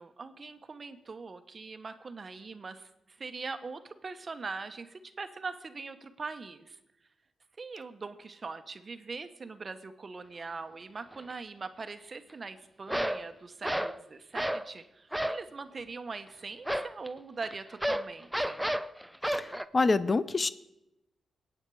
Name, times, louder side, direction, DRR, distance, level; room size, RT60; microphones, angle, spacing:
voice 1, 0.0-6.8 7.6-18.6, right 4 dB, 40° right, 9 dB, 1.1 m, -42 dB
sound 1, 11.1-11.3 12.9-13.3 13.6-14.0 14.3-14.7 15.1-15.5 16.7-19.7, equal, 5° right, 0.6 m, -31 dB
voice 2, 19.2-20.5, left 3 dB, 35° left, 15 dB, 0.6 m, -27 dB
22.0 x 8.9 x 4.9 m, 0.90 s
cardioid pair, 75°, 0 cm